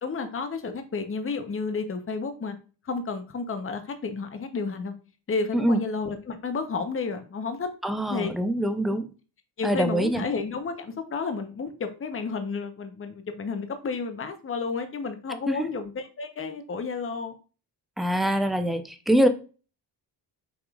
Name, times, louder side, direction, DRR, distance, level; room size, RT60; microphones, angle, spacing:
voice 1, 0.0-2.6 2.8-4.9 5.3-7.7 8.1-8.3 8.9-9.0 9.6-17.4, left 4 dB, 30° left, 7 dB, 0.8 m, -31 dB
voice 2, 7.8-9.0 9.6-10.2 15.5-15.7 18.0-19.3, right 1 dB, ahead, 7 dB, 0.5 m, -24 dB
6.1 x 3.6 x 2.4 m, 0.35 s
cardioid pair, 95°, 42 cm